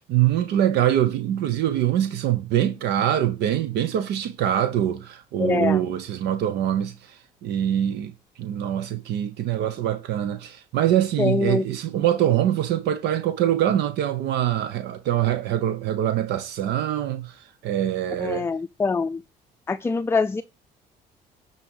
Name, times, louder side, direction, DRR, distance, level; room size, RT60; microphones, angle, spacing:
voice 1, 0.0-8.1 8.4-17.4 17.6-18.5, right 11 dB, 80° right, 1.0 m, -24 dB
voice 2, 5.4-5.8 11.2-11.7 18.2-19.2 19.7-20.4, left 4 dB, 15° left, 0.4 m, -24 dB
10.0 x 4.2 x 6.4 m
cardioid pair, 110°, 17 cm